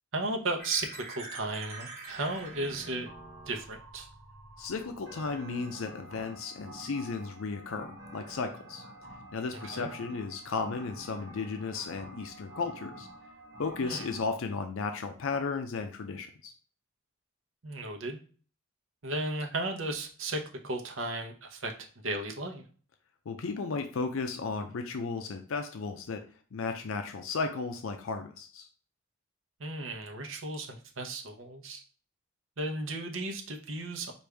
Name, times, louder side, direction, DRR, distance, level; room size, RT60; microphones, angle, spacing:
voice 1, 0.1-3.1 3.5-4.1 9.7-9.9 13.8-14.1 17.6-18.2 19.0-21.7 22.0-22.6 29.6-31.8 32.6-34.1, right 2 dB, 75° right, 3 dB, 0.8 m, -35 dB
sound 1, 0.6-14.2, right 1 dB, 35° right, 1.2 m, -47 dB
voice 2, 4.6-8.8 9.3-13.1 13.6-16.5 23.3-26.2 26.5-28.7, left 4 dB, 80° left, 6 dB, 0.5 m, -34 dB
4.8 x 2.6 x 3.3 m, 0.41 s
head